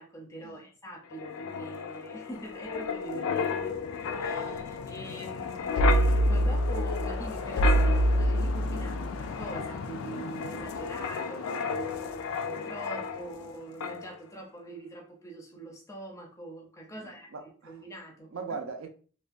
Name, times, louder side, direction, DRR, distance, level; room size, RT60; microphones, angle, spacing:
voice 1, 0.0-3.8 4.2-17.3 17.6-18.6, right 2 dB, 15° left, 0.4 m, -44 dB
Wind, 1.1-13.5 13.8-14.0, left 1 dB, 85° left, 0.3 m, -29 dB
voice 2, 16.9-17.8 18.3-18.9, right 5 dB, 75° right, 0.5 m, -40 dB
2.5 x 2.2 x 2.4 m
head